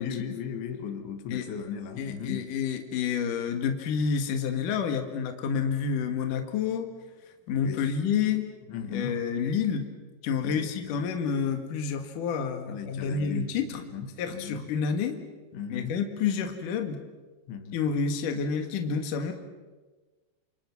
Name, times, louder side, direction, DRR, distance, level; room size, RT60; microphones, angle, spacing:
voice 1, 0.0-2.4 7.6-7.9 8.7-9.1 10.4-11.0 12.7-13.5 13.7-14.7 15.5-15.9 17.5-17.8, left 7 dB, 85° left, 7 dB, 4.2 m, -36 dB
voice 2, 2.0-6.9 7.5-8.4 8.9-9.9 10.2-13.8 14.2-15.2 15.7-17.0 17.7-19.3, left 6 dB, 55° left, 5 dB, 3.0 m, -29 dB
28.5 x 27.0 x 6.1 m, 1.3 s
omnidirectional pair, 5.2 m